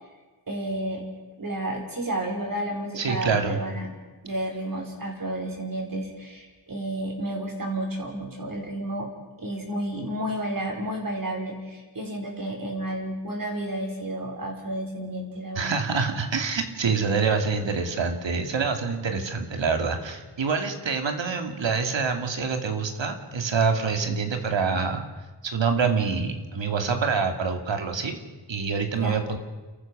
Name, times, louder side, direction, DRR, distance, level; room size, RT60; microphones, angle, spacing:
voice 1, 0.5-1.1 1.4-3.9 4.2-9.1 9.4-15.8 28.9-29.2, right 1 dB, 45° right, 1 dB, 5.2 m, -31 dB
voice 2, 3.0-3.6 15.6-25.0 25.4-28.2 28.5-29.4, right 5 dB, 70° right, 5 dB, 2.6 m, -26 dB
30.0 x 14.5 x 6.2 m, 1.2 s
wide cardioid pair, 105°, 46 cm